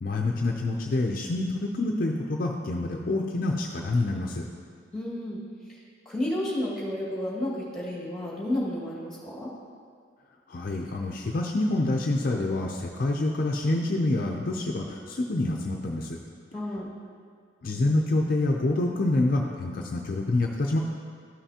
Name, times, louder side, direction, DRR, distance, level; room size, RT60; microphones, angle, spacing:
voice 1, 0.0-4.5 10.5-16.2 17.6-20.8, left 2 dB, 45° left, 1 dB, 0.5 m, -27 dB
voice 2, 4.9-5.4 6.1-9.5 16.5-16.9, left 1 dB, ahead, -6 dB, 1.8 m, -31 dB
12.5 x 5.7 x 2.8 m, 2.1 s
head